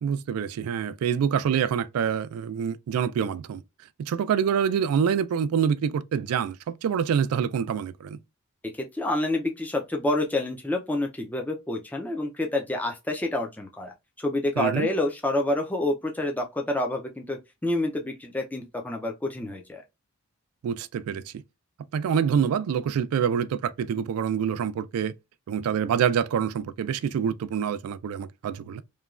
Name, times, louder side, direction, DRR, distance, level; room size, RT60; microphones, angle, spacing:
voice 1, 0.0-3.6 4.0-8.2 14.6-14.9 20.6-21.4 21.9-25.1 25.5-28.8, right 7 dB, 80° right, 0.3 m, -26 dB
voice 2, 8.7-19.8, left 1 dB, 5° left, 0.3 m, -28 dB
3.0 x 2.2 x 2.3 m
head